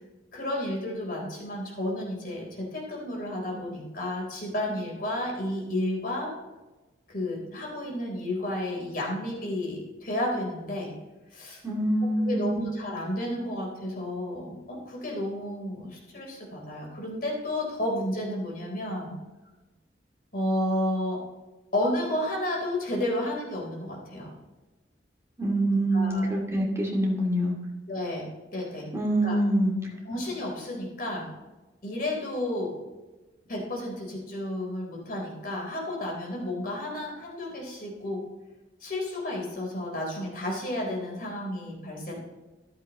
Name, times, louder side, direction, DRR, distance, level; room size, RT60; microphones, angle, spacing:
voice 1, 0.3-6.3 7.1-10.9 11.3-11.6 12.0-19.2 20.3-21.2 21.7-24.3 25.7-26.3 27.9-28.9 29.2-29.4 30.0-31.3 31.8-32.8 33.4-38.2 38.8-42.2, left 1 dB, 55° left, -1 dB, 3.7 m, -32 dB
voice 2, 11.6-12.6 25.4-27.6 28.9-29.7, right 1 dB, 15° right, -2 dB, 2.4 m, -25 dB
14.0 x 11.0 x 3.0 m, 1.2 s
head